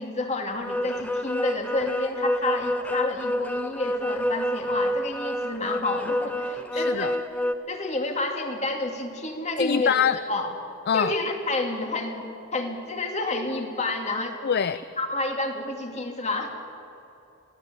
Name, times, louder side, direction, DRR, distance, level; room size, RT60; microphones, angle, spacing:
voice 1, 0.0-7.2 7.7-9.9 10.3-10.5 10.9-14.4 15.0-16.6, left 2 dB, 35° left, 4 dB, 2.5 m, -29 dB
sound 1, 0.6-7.5, equal, 5° left, 0.8 m, -28 dB
voice 2, 6.7-7.1 9.6-10.2 10.9-11.1 14.4-14.8, left 7 dB, 50° left, 14 dB, 0.5 m, -24 dB
23.0 x 16.0 x 9.1 m, 2.8 s
head